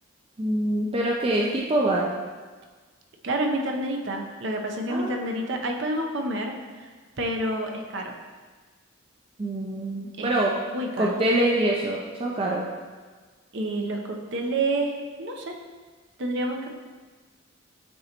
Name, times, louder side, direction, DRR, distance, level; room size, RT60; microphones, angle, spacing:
voice 1, 0.4-2.1 4.9-5.3 9.4-10.5 11.0-12.6, right 1 dB, 25° right, -2 dB, 0.4 m, -25 dB
voice 2, 3.2-6.5 7.2-8.1 10.2-10.3 10.7-11.2 13.5-15.5 16.2-16.7, right 1 dB, 60° right, 2 dB, 0.7 m, -28 dB
9.1 x 3.9 x 2.9 m, 1.4 s
head